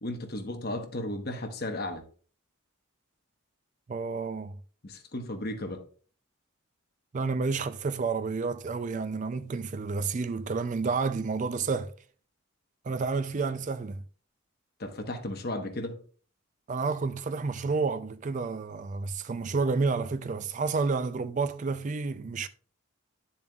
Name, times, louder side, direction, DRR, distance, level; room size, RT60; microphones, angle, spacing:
voice 1, 0.0-2.0 4.8-5.8 14.8-16.0, left 1 dB, 45° left, 1.1 m, -35 dB
voice 2, 3.9-4.5 7.1-11.9 12.8-14.0 16.7-22.5, right 4 dB, 35° right, 0.3 m, -30 dB
10.0 x 7.1 x 2.3 m
head